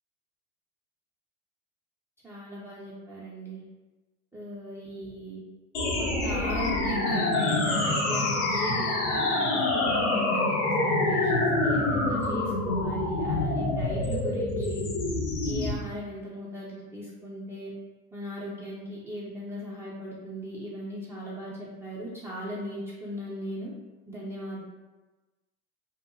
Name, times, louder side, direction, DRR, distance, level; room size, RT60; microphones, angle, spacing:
voice 1, 2.2-3.6 4.3-5.4 6.0-14.8 15.4-17.7 18.1-23.7 24.1-24.6, equal, 5° right, -8 dB, 0.4 m, -38 dB
sound 1, 5.7-15.7, left 2 dB, 75° left, 0.8 m, -26 dB
2.8 x 2.2 x 2.6 m, 1.2 s
hypercardioid pair, 85°, 45 cm